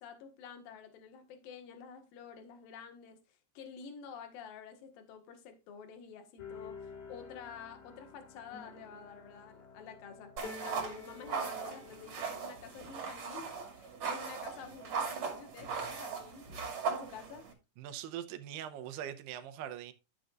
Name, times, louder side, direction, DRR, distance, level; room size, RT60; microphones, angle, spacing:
voice 1, 0.0-10.3 10.6-17.5, left 6 dB, 65° left, 3.1 m, -50 dB
sound 1, 6.4-12.2, left 4 dB, 80° left, 4.4 m, -49 dB
sound 2, 10.4-17.5, right 5 dB, 45° right, 3.0 m, -39 dB
voice 2, 17.8-19.9, right 10 dB, 80° right, 2.7 m, -42 dB
12.5 x 7.9 x 2.5 m
omnidirectional pair, 4.9 m